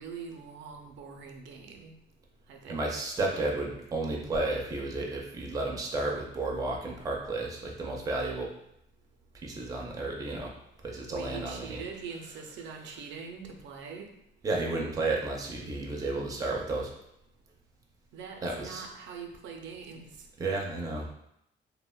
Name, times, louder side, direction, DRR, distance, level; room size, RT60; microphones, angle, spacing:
voice 1, 0.0-1.9 2.5-2.8 11.1-14.1 18.1-20.2, right 5 dB, 85° right, 2 dB, 0.4 m, -43 dB
voice 2, 2.7-8.5 9.4-10.5 10.8-11.8 14.4-16.9 18.4-18.8 20.4-21.1, right 2 dB, 20° right, -1 dB, 0.4 m, -32 dB
3.2 x 2.1 x 2.2 m, 0.76 s
cardioid pair, 160°, 19 cm